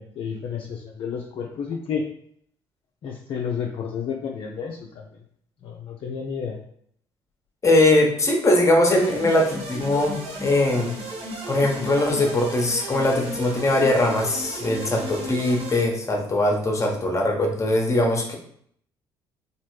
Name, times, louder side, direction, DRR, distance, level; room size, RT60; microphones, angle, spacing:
voice 1, 0.0-2.0 3.0-5.2 5.6-6.6, left 6 dB, 45° left, 0 dB, 0.4 m, -31 dB
voice 2, 7.6-10.9 11.5-18.3, left 1 dB, 25° left, 2 dB, 0.9 m, -21 dB
sound 1, 9.0-15.8, equal, 50° right, 0.9 m, -34 dB
3.0 x 2.4 x 3.0 m, 0.66 s
hypercardioid pair, 50°, 13 cm